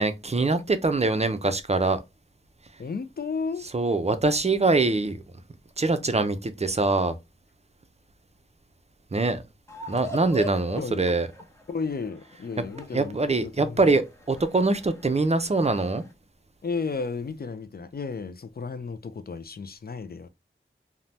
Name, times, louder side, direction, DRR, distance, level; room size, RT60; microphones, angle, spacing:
voice 1, 0.0-2.0 3.7-5.2 5.8-7.2 9.1-9.4 9.9-11.3 12.9-16.0, right 3 dB, 30° right, 0.4 m, -23 dB
voice 2, 2.8-3.7 10.8-11.2 11.7-13.9 16.6-20.3, left 4 dB, 50° left, 0.4 m, -33 dB
sound 1, 9.7-16.1, left 1 dB, 15° left, 0.7 m, -42 dB
2.7 x 2.1 x 3.2 m
wide cardioid pair, 45°, 21 cm